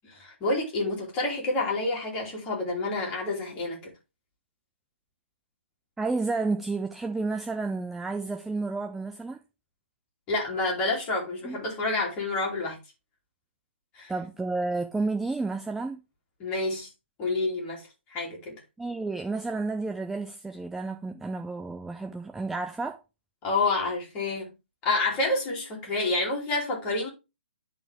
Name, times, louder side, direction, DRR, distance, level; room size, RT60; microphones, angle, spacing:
voice 1, 0.0-3.9 10.3-12.8 13.9-14.1 16.4-16.9 17.2-18.5 23.4-24.5 24.8-27.1, left 2 dB, 20° left, 2.8 m, -28 dB
voice 2, 6.0-9.4 11.4-11.6 14.1-16.0 18.8-23.0, right 3 dB, 5° right, 0.4 m, -31 dB
10.5 x 4.2 x 3.4 m
figure-of-eight pair, 135°, 6 cm